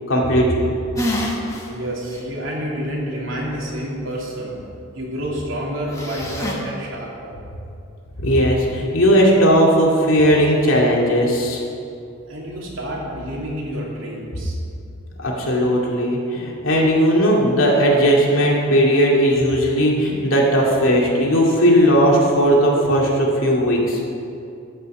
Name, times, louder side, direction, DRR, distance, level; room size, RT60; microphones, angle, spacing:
voice 1, 0.1-0.7 8.2-11.6 15.2-24.0, equal, 85° left, -2 dB, 2.3 m, -17 dB
sound 1, 0.9-1.7 2.1-2.2 5.9-6.5, left 1 dB, 15° left, 1.5 m, -26 dB
voice 2, 1.7-4.6 4.9-7.3 12.3-14.6, equal, 80° right, -4 dB, 2.9 m, -28 dB
13.5 x 5.7 x 7.1 m, 2.5 s
head